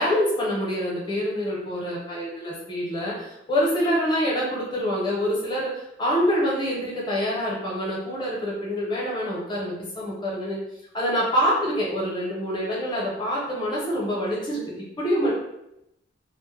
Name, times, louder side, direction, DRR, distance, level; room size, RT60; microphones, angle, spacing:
voice 1, 0.0-10.6 10.9-15.3, equal, 25° left, -5 dB, 0.7 m, -26 dB
2.1 x 2.1 x 3.1 m, 0.86 s
head